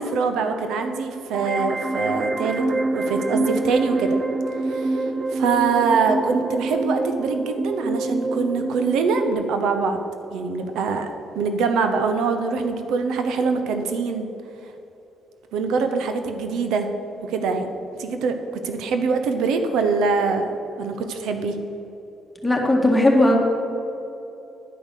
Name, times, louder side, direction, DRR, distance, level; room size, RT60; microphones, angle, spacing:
voice 1, 0.0-4.2 4.6-10.0 10.3-11.1 11.3-14.3 15.5-16.9 17.2-21.6, right 4 dB, 85° right, 7 dB, 0.7 m, -24 dB
sound 1, 1.3-9.3, right 2 dB, 55° right, 0.7 m, -26 dB
voice 2, 22.4-23.4, left 1 dB, 5° left, -1 dB, 1.9 m, -17 dB
10.5 x 5.2 x 6.4 m, 2.9 s
cardioid pair, 90°, 0 cm